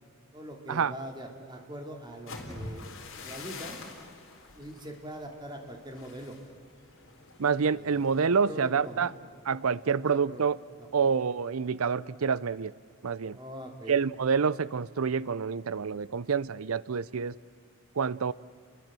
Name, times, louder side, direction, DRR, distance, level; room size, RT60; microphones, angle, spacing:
voice 1, 0.3-3.8 4.5-6.4 7.7-9.1 9.7-10.4 10.8-11.1 13.3-14.0, right 1 dB, 20° right, 2.9 m, -43 dB
sound 1, 2.1-10.0 10.3-10.6 11.0-11.4, left 3 dB, 65° left, 4.1 m, -46 dB
voice 2, 7.4-9.1 9.5-10.6 10.9-12.7 13.0-13.4 13.9-17.4 18.0-18.3, right 6 dB, 85° right, 0.6 m, -27 dB
29.5 x 22.0 x 7.7 m
head